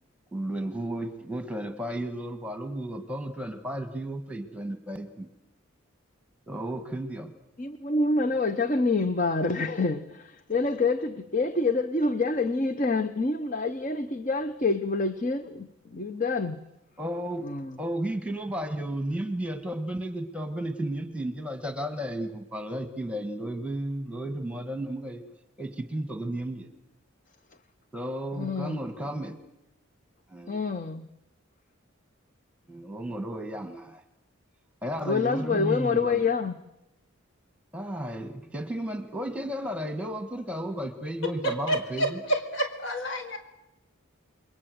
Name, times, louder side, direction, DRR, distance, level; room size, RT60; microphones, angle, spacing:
voice 1, 0.3-5.3 6.5-7.3 17.0-17.4 17.8-25.2 25.6-26.7 27.9-29.4 30.3-30.6 32.7-34.0 34.8-36.2 37.7-42.2, right 1 dB, 5° right, 7 dB, 1.6 m, -33 dB
voice 2, 7.6-16.6 17.4-17.8 28.3-28.8 30.5-31.1 35.0-36.6, left 3 dB, 40° left, 10 dB, 0.9 m, -27 dB
voice 3, 41.4-43.4, right 1 dB, 60° left, 5 dB, 4.9 m, -29 dB
29.0 x 22.0 x 7.9 m, 0.89 s
head